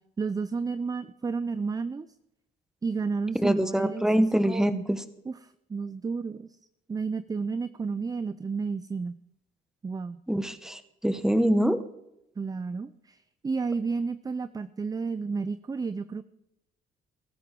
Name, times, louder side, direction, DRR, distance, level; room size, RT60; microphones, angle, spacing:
voice 1, 0.2-2.1 2.8-4.8 5.3-6.5 6.9-9.2 9.8-10.2 12.4-13.2 13.4-16.2, right 4 dB, 20° right, 14 dB, 0.4 m, -31 dB
voice 2, 3.4-5.0 10.3-11.8, right 1 dB, 5° right, 11 dB, 0.9 m, -24 dB
16.0 x 14.0 x 3.7 m, 0.87 s
cardioid pair, 90°, 20 cm